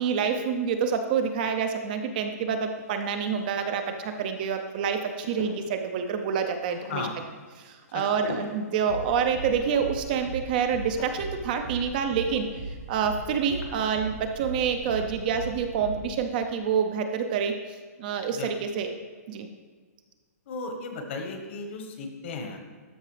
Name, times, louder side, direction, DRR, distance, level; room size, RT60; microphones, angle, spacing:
voice 1, 0.0-7.0 7.6-17.6 18.0-18.9 19.3-19.5, right 6 dB, 30° right, 6 dB, 0.5 m, -27 dB
sound 1, 2.6-15.5, left 2 dB, 75° left, 1.8 m, -47 dB
sound 2, 8.9-16.2, right 3 dB, 80° right, 2.0 m, -39 dB
voice 2, 20.5-22.6, left 3 dB, 45° left, 5 dB, 1.2 m, -35 dB
13.0 x 4.8 x 3.3 m, 1.5 s
hypercardioid pair, 165°, 9 cm